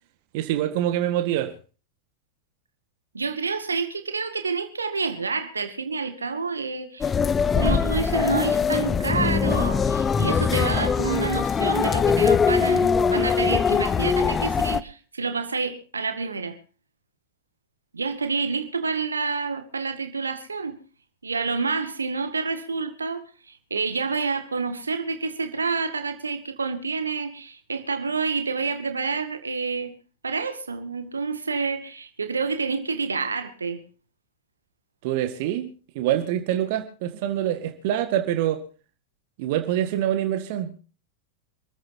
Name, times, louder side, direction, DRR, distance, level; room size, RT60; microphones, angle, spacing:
voice 1, 0.3-1.5 35.0-35.7 36.0-38.6 39.4-40.7, right 11 dB, 50° right, 1.7 m, -25 dB
voice 2, 3.1-7.1 7.6-16.6 17.9-20.8 21.2-29.9 30.2-33.8, right 4 dB, 75° right, 2.1 m, -28 dB
sound 1, 7.0-14.8, left 6 dB, 20° left, 0.7 m, -22 dB
27.0 x 15.0 x 2.8 m
figure-of-eight pair, 90°, 0 cm